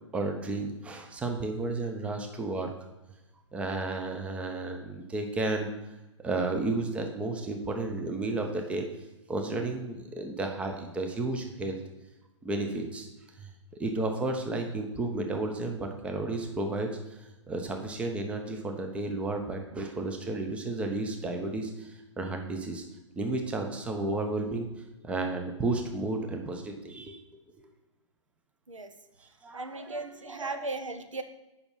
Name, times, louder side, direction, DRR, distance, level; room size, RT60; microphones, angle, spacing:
voice 1, 0.1-2.7 3.5-5.7 6.2-8.9 9.3-11.8 12.4-13.1 13.4-13.5 13.8-16.9 17.5-21.9 22.2-22.8 23.2-24.7 25.0-27.2 29.4-30.0 30.3-30.5, right 2 dB, 5° right, 3 dB, 0.7 m, -32 dB
voice 2, 29.5-31.2, right 3 dB, 80° right, 8 dB, 0.8 m, -36 dB
6.8 x 5.6 x 5.5 m, 1.0 s
figure-of-eight pair, 120°, 16 cm